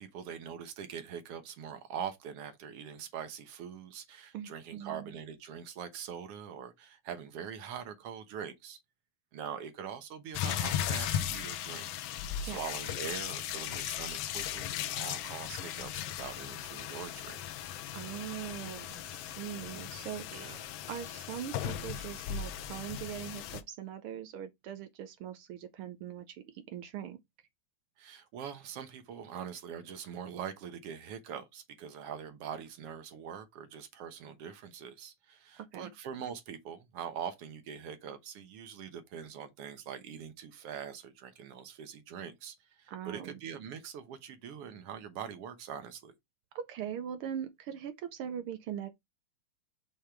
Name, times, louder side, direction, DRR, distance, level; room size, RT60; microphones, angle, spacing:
voice 1, 0.0-8.8 9.3-11.9 12.4-17.5 20.3-20.7 28.0-46.1, right 8 dB, 65° right, 1.7 m, -43 dB
voice 2, 4.3-5.1 12.4-12.6 17.9-20.3 20.9-27.2 35.6-35.9 42.9-43.4 46.5-48.9, right 9 dB, 85° right, 1.2 m, -41 dB
sound 1, 10.3-23.6, left 10 dB, 75° left, 1.5 m, -37 dB
6.7 x 3.7 x 4.5 m
omnidirectional pair, 3.4 m